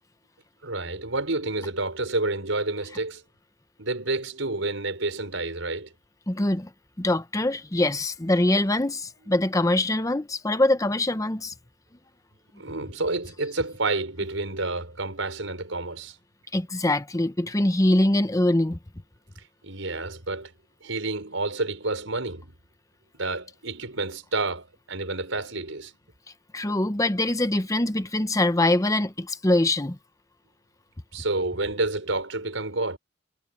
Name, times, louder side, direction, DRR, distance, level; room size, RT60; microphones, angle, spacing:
voice 1, 0.6-3.2 3.8-5.9 12.6-16.2 19.6-20.5 20.8-22.5 23.2-25.9 31.1-33.0, right 2 dB, 90° right, 5.3 m, -29 dB
voice 2, 6.3-6.7 7.0-11.5 16.5-18.8 26.5-30.0, left 1 dB, 15° left, 0.9 m, -23 dB
head